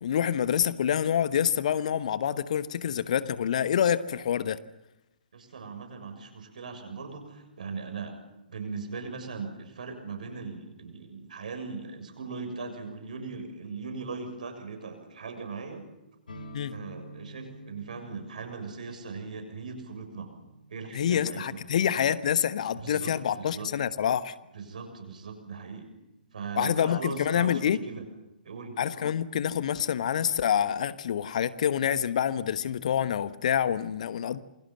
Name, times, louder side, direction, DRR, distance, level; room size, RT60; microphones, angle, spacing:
voice 1, 0.0-4.6 16.5-16.7 20.9-24.3 26.6-27.8 28.8-34.4, left 9 dB, 50° left, 14 dB, 1.2 m, -27 dB
voice 2, 5.3-8.1 8.5-15.8 16.7-20.3 20.7-21.6 22.8-23.7 24.5-25.9 26.3-28.0 28.4-28.8, right 4 dB, 60° right, 6 dB, 6.8 m, -39 dB
sound 1, 16.3-23.9, right 1 dB, 70° left, 4.8 m, -50 dB
28.0 x 22.5 x 7.5 m, 0.95 s
figure-of-eight pair, 120°, 5 cm